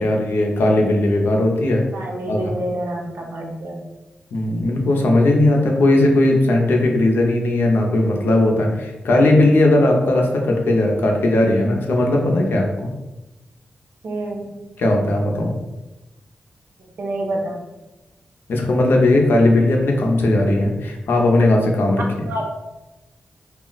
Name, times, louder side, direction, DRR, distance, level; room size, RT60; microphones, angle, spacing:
voice 1, 0.0-1.8 2.3-2.5 4.3-12.7 14.8-15.5 18.5-22.3, left 1 dB, 75° left, 1 dB, 0.5 m, -17 dB
voice 2, 1.9-3.8 14.0-14.6 16.8-17.6 22.2-22.5, right 1 dB, 75° right, 0 dB, 0.6 m, -28 dB
2.3 x 2.0 x 3.8 m, 1.0 s
cardioid pair, 65°, 4 cm